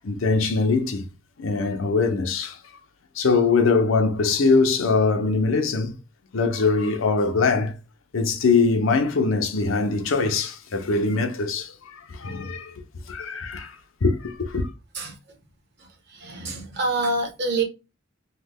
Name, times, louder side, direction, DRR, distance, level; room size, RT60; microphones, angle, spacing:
voice 1, 0.0-1.0 1.4-2.6 3.2-5.9 6.3-7.7 8.1-13.8 14.0-14.7, left 4 dB, 75° left, 0.6 m, -22 dB
voice 2, 15.8-17.6, right 2 dB, 55° right, 1.1 m, -27 dB
3.2 x 2.2 x 3.4 m
head